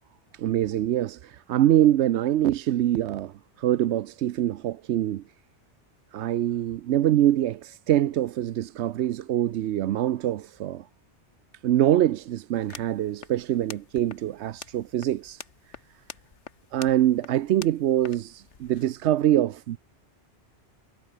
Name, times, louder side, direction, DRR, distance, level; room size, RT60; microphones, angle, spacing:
voice 1, 0.3-3.3 3.6-5.2 6.1-10.8 11.6-15.4 16.7-19.8, right 12 dB, 80° right, 0.9 m, -24 dB
sound 1, 12.5-18.8, left 6 dB, 85° left, 1.7 m, -47 dB
omnidirectional pair, 1.2 m